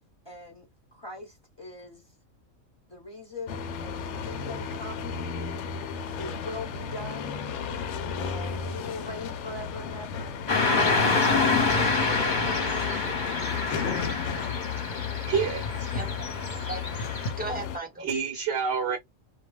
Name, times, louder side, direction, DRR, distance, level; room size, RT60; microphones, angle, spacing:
voice 1, 0.2-2.0 2.9-5.3 6.2-7.4 8.2-10.3, left 2 dB, 20° left, 1.1 m, -41 dB
sound 1, 3.5-17.8, left 6 dB, 65° left, 0.8 m, -34 dB
Car passing by / Traffic noise roadway noise, 10.5-17.3, left 3 dB, 40° left, 0.9 m, -26 dB
voice 2, 14.7-15.3 15.9-18.1, right 3 dB, 10° right, 0.8 m, -39 dB
voice 3, 15.2-15.9 18.0-19.0, right 6 dB, 60° right, 1.0 m, -28 dB
2.3 x 2.3 x 3.1 m
omnidirectional pair, 1.4 m